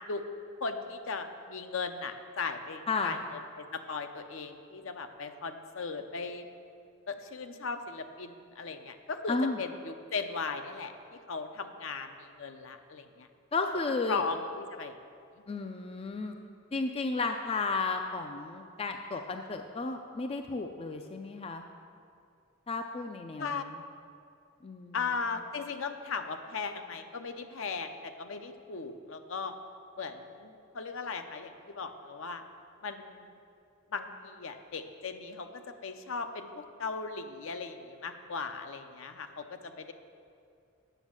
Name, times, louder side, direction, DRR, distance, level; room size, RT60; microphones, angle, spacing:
voice 1, 0.6-3.2 3.7-6.5 7.1-10.9 11.3-13.3 14.1-14.9 23.4-23.6 24.9-29.5 30.0-32.4 32.8-33.3 33.9-39.9, left 4 dB, 65° left, 7 dB, 0.7 m, -37 dB
voice 2, 2.9-3.2 9.3-9.6 13.5-14.2 15.5-16.4 16.7-21.6 22.7-23.8 24.6-25.0, left 3 dB, 25° left, 5 dB, 0.4 m, -33 dB
9.0 x 6.2 x 7.5 m, 2.4 s
head